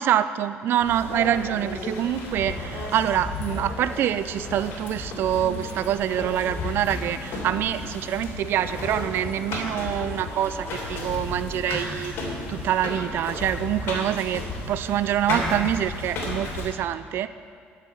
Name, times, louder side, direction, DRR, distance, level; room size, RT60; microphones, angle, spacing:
voice 1, 0.0-14.4 14.7-17.3, right 11 dB, 60° right, 13 dB, 0.3 m, -26 dB
sound 1, 0.8-16.7, left 2 dB, 65° left, 3.1 m, -33 dB
11.0 x 7.3 x 6.9 m, 2.2 s
cardioid pair, 120°, 4 cm